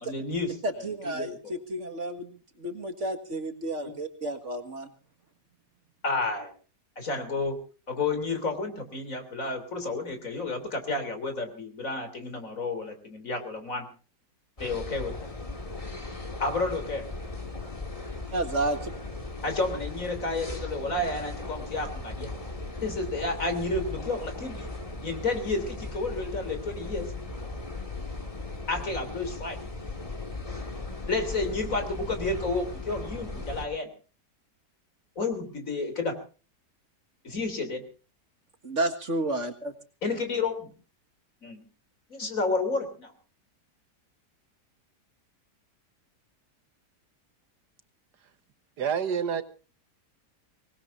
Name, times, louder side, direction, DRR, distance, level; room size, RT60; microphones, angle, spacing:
voice 1, 0.0-1.3 3.8-3.9 6.0-6.5 7.0-7.6 7.9-13.9 14.6-15.2 16.4-17.1 19.4-22.3 22.8-24.7 25.0-27.1 28.7-29.6 31.1-33.9 35.2-36.2 37.2-37.8 40.0-40.7 41.4-41.6 42.1-43.1, left 3 dB, 50° left, 3.7 m, -31 dB
voice 2, 0.6-4.9 18.3-18.9 38.6-39.7, right 2 dB, 45° right, 2.0 m, -31 dB
sound 1, 14.6-33.7, left 2 dB, 20° left, 2.2 m, -37 dB
voice 3, 48.8-49.4, right 7 dB, 75° right, 1.8 m, -27 dB
25.0 x 19.5 x 2.6 m
omnidirectional pair, 1.8 m